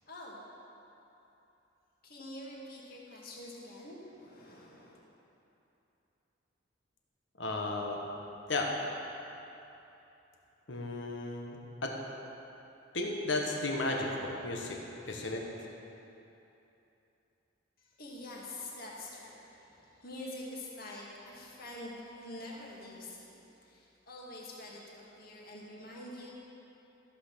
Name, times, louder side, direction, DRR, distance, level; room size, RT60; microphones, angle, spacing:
voice 1, 0.1-0.4 2.0-5.0 18.0-26.3, left 1 dB, 50° left, -4 dB, 2.1 m, -46 dB
voice 2, 7.4-8.0 8.5-8.7 10.7-11.9 12.9-14.8 15.1-15.4, left 2 dB, 70° left, 0 dB, 1.4 m, -34 dB
14.0 x 6.0 x 6.8 m, 2.9 s
head